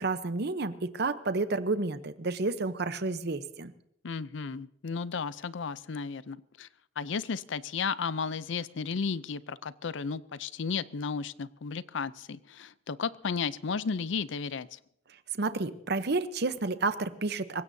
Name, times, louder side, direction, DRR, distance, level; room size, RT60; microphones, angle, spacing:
voice 1, 0.0-3.7 15.4-17.6, right 3 dB, 55° right, 12 dB, 0.8 m, -30 dB
voice 2, 4.0-6.7 7.0-14.8, left 5 dB, 70° left, 17 dB, 0.5 m, -34 dB
26.0 x 16.5 x 2.7 m, 0.75 s
head